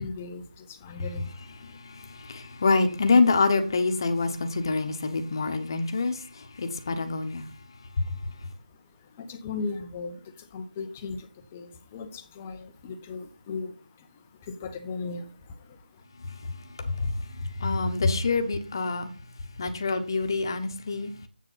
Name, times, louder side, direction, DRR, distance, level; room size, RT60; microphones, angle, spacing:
voice 1, 0.0-1.8 9.0-16.0, left 4 dB, 10° left, 0.5 m, -38 dB
voice 2, 1.6-7.5 8.0-8.1 16.8-17.1 17.6-19.1 19.6-21.1, left 3 dB, 25° left, 1.0 m, -26 dB
8.2 x 6.7 x 5.6 m
figure-of-eight pair, 175°, 5 cm